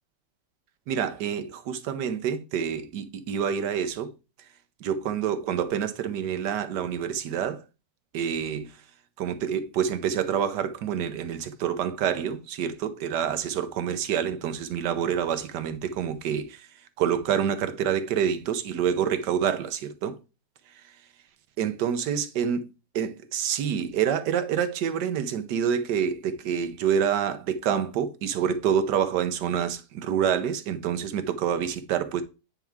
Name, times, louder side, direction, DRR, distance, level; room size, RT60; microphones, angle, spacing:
voice 1, 0.9-4.1 4.8-7.6 8.1-8.8 9.2-16.7 17.0-20.2 20.7-20.8 21.6-22.6 22.9-32.2, right 8 dB, 85° right, 1.4 m, -27 dB
9.0 x 4.6 x 3.5 m
omnidirectional pair, 1.8 m